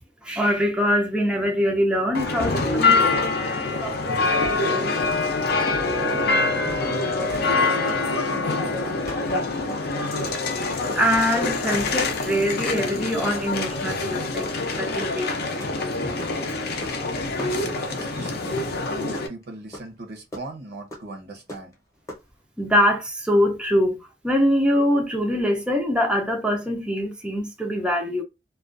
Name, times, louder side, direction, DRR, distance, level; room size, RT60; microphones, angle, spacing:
voice 1, 0.2-5.1 10.3-10.5 11.0-16.3 22.6-28.2, equal, 5° right, 0.4 m, -24 dB
sound 1, 2.1-19.3, left 3 dB, 60° left, 0.5 m, -25 dB
sound 2, 5.5-5.7 5.9-6.2 6.7-6.9 7.3-7.5 7.9-8.0 8.5-8.7 9.1-9.2 9.5-9.9 10.3-10.4 10.9-11.2 11.5-11.7 11.9-12.2 12.7-12.8 13.3-13.4 13.8-14.0 14.4-14.7 15.0-16.4 16.8-17.1 17.4-18.2 18.6-18.7 19.0-19.4 19.7-19.8 20.3-20.4 20.9-21.0 21.5-21.7 22.1-22.2, equal, 20° left, 0.8 m, -37 dB
voice 2, 5.9-6.3 6.6-9.2 17.3-21.7, right 2 dB, 60° right, 0.6 m, -39 dB
2.4 x 2.2 x 2.4 m
head